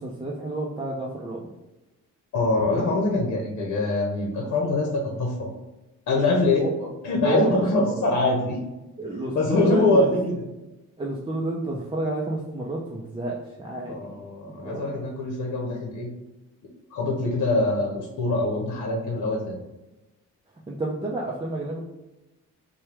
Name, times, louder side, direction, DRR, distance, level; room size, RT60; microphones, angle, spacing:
voice 1, 0.0-1.5 6.3-6.9 7.2-8.0 9.0-9.9 11.0-14.2 14.5-14.9 20.7-21.8, right 2 dB, 15° right, -4 dB, 0.6 m, -30 dB
voice 2, 2.3-5.5 6.1-6.6 7.0-8.6 9.3-10.4 13.9-16.1 16.9-19.6, left 2 dB, 60° left, 0 dB, 0.9 m, -24 dB
4.4 x 2.3 x 3.3 m, 1.0 s
cardioid pair, 90°, 30 cm